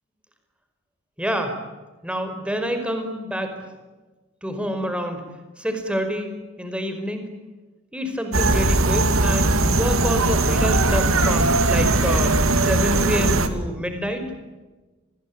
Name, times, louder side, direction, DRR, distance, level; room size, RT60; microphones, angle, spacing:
voice 1, 1.2-1.6 2.0-3.6 4.4-5.3 5.6-7.3 7.9-14.3, equal, 5° right, 6 dB, 5.0 m, -27 dB
sound 1, 8.3-13.5, right 2 dB, 75° right, 2.7 m, -19 dB
30.0 x 22.0 x 8.7 m, 1.2 s
head